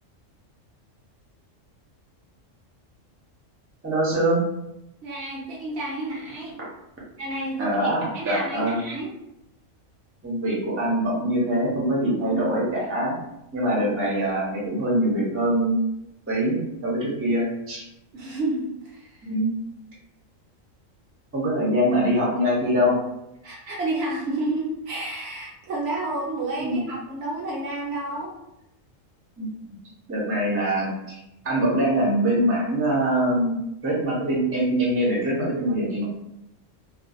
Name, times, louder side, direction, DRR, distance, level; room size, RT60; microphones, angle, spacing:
voice 1, 3.8-4.4 7.6-8.8 10.2-13.1 13.5-15.9 16.3-17.8 19.2-19.5 21.3-23.0 26.6-26.8 29.4-29.5 30.1-31.2 31.4-33.6 33.8-36.1, right 1 dB, 15° right, -6 dB, 0.4 m, -23 dB
voice 2, 5.0-6.6 7.2-9.1 12.3-12.4 18.1-19.3 23.4-28.3, right 2 dB, 65° right, -3 dB, 0.8 m, -30 dB
2.4 x 2.1 x 2.5 m, 0.86 s
omnidirectional pair, 1.3 m